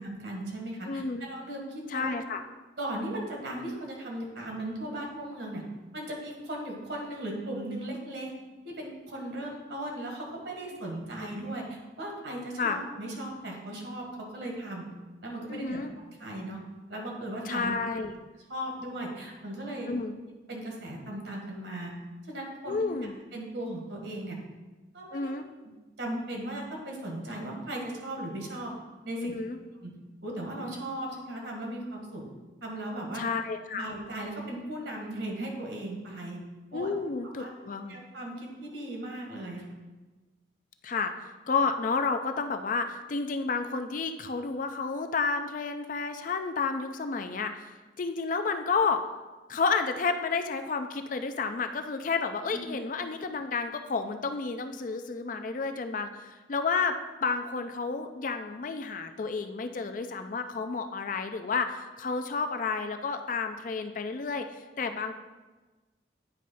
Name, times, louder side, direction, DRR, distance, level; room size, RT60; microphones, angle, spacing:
voice 1, 0.0-2.1 2.8-5.6 5.9-8.3 8.6-14.9 15.2-15.8 16.1-16.6 16.9-17.7 18.5-19.9 20.5-21.9 22.3-22.8 23.3-24.4 24.9-25.3 26.0-28.7 29.0-29.3 29.8-29.9 30.2-32.2 32.6-33.2 33.7-36.4 36.7-36.9 37.4-37.5 37.9-39.6 52.5-52.8, right 1 dB, 65° right, 0 dB, 1.6 m, -37 dB
voice 2, 0.9-1.3 1.9-2.4 11.2-11.3 12.6-12.8 15.5-15.9 17.5-18.1 19.9-20.1 22.7-23.1 25.1-25.5 29.2-29.6 33.1-33.9 36.7-38.0 40.8-41.1 41.5-49.0 49.5-65.1, left 4 dB, 45° left, 7 dB, 0.4 m, -31 dB
9.1 x 3.2 x 5.4 m, 1.2 s
head